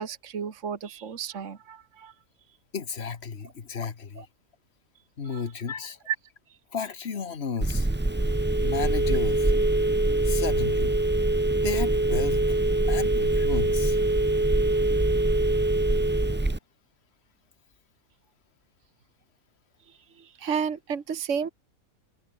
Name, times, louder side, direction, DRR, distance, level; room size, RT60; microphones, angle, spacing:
voice 1, 0.0-2.1 4.2-4.3 5.3-5.4 6.1-6.2 19.9-21.5, right 7 dB, 60° right, 1.8 m, -32 dB
voice 2, 2.7-4.3 5.2-6.0 6.7-7.9 8.6-9.5 10.3-10.9 11.6-12.6 12.9-14.0, left 6 dB, 50° left, 1.7 m, -33 dB
Telephone, 7.6-16.6, right 2 dB, 10° right, 0.6 m, -23 dB
omnidirectional pair, 1.5 m